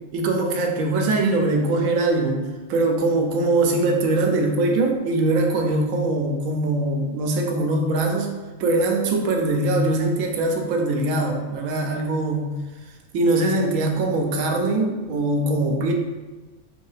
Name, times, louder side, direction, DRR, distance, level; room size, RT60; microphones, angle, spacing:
voice 1, 0.1-8.3 8.6-12.5 13.1-15.9, right 2 dB, 85° right, 2 dB, 1.0 m, -22 dB
2.9 x 2.7 x 3.3 m, 1.3 s
omnidirectional pair, 1.3 m